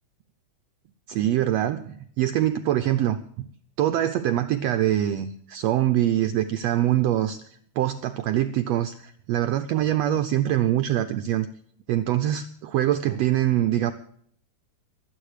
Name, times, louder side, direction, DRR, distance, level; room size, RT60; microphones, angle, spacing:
voice 1, 1.1-3.5 3.8-7.4 7.8-11.5 11.9-13.9, right 12 dB, 75° right, 10 dB, 1.6 m, -24 dB
23.0 x 8.4 x 4.9 m, 0.63 s
omnidirectional pair, 3.6 m